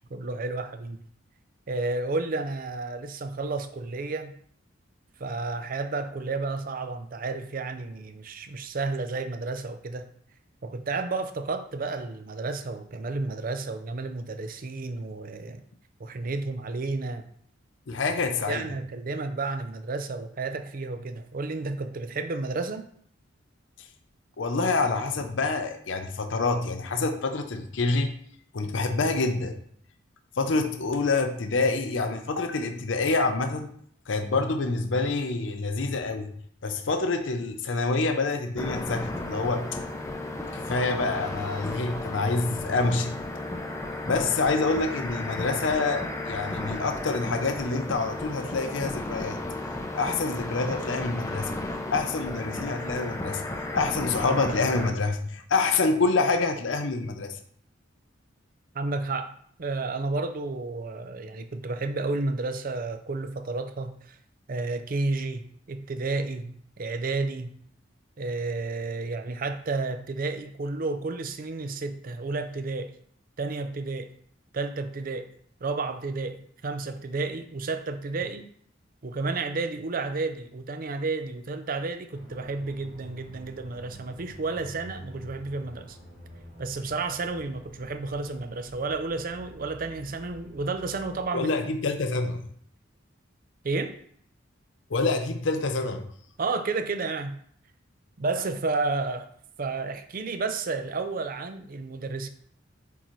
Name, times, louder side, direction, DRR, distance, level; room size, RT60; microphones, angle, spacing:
voice 1, 0.1-1.0 1.7-4.3 5.2-10.1 10.6-15.6 16.0-17.3 18.5-22.9 58.7-59.3 59.6-64.2 64.5-67.5 68.2-72.9 73.4-74.1 74.5-75.3 75.6-78.5 79.0-86.0 86.6-91.7 93.6-94.0 96.4-97.4 98.2-99.3 99.6-102.3, right 3 dB, 45° right, 9 dB, 0.5 m, -31 dB
voice 2, 17.9-18.7 24.4-28.1 28.5-29.6 30.4-33.7 34.1-36.3 36.6-39.8 40.5-43.2 44.0-49.4 49.9-51.5 51.9-53.4 53.7-57.4 91.3-92.4 94.9-96.0, left 3 dB, 70° left, 6 dB, 0.6 m, -27 dB
sound 1, 38.6-54.9, left 2 dB, 15° left, 0.6 m, -34 dB
sound 2, 82.1-91.2, right 1 dB, 65° right, 2.2 m, -48 dB
8.2 x 3.9 x 3.1 m, 0.62 s
head